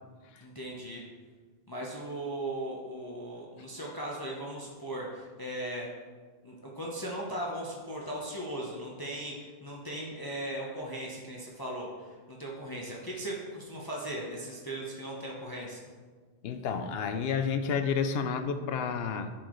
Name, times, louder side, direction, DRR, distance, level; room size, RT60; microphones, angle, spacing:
voice 1, 0.4-1.0 1.7-5.9 6.4-15.8, right 1 dB, 25° left, -3 dB, 0.8 m, -38 dB
voice 2, 16.4-19.3, left 6 dB, 75° left, 9 dB, 0.8 m, -30 dB
10.5 x 4.5 x 3.1 m, 1.5 s
omnidirectional pair, 1.1 m